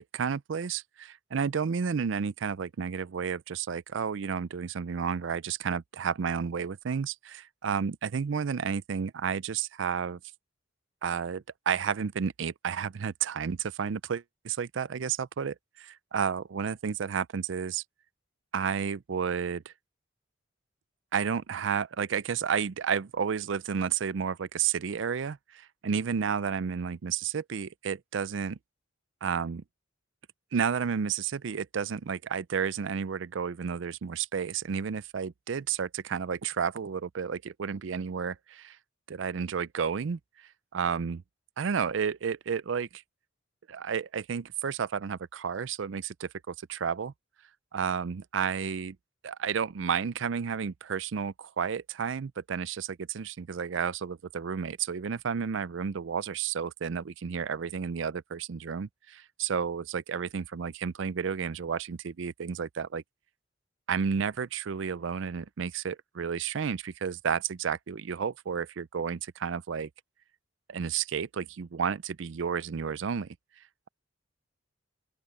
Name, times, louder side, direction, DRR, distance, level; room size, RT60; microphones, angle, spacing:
voice 1, 0.0-10.2 11.0-17.8 18.5-19.7 21.1-28.6 29.2-29.6 30.5-38.8 39.1-41.2 41.6-43.0 43.7-47.1 47.7-49.0 49.2-63.0 63.9-69.9 70.7-73.4, right 6 dB, 70° right, 0.5 m, -31 dB
open air
head